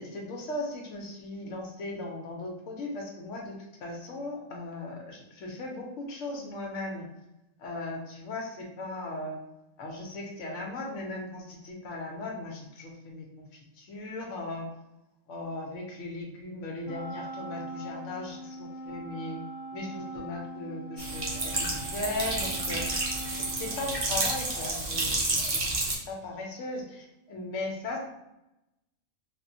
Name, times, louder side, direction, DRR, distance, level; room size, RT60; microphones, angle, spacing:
voice 1, 0.0-3.5 3.8-7.1 7.6-9.4 9.8-13.5 13.8-14.7 15.3-18.7 19.3-19.4 19.7-22.8 23.6-28.0, left 2 dB, 65° left, 0 dB, 0.9 m, -37 dB
Wind instrument woodwind instrument, 16.8-24.5, right 2 dB, 45° right, 1.4 m, -42 dB
sound 1, 21.0-26.0, right 2 dB, 65° right, 0.3 m, -30 dB
3.5 x 2.1 x 2.6 m, 0.91 s
omnidirectional pair, 1.5 m